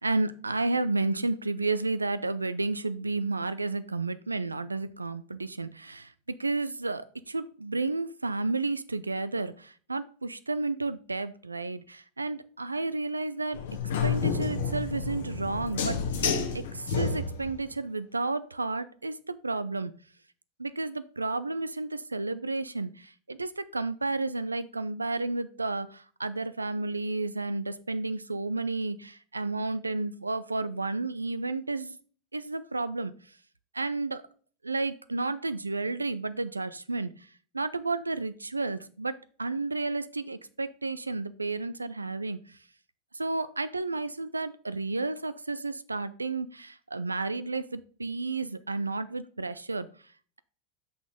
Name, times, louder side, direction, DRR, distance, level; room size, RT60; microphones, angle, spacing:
voice 1, 0.0-13.6 14.0-16.0 16.5-19.9 20.6-32.0 32.3-33.1 33.7-34.2 34.6-37.1 37.5-42.4 43.1-49.9, right 3 dB, 85° right, 15 dB, 0.5 m, -32 dB
sound 1, 13.5-17.6, left 5 dB, 65° left, 1.4 m, -30 dB
6.3 x 5.6 x 5.0 m, 0.44 s
figure-of-eight pair, 85°, 0 cm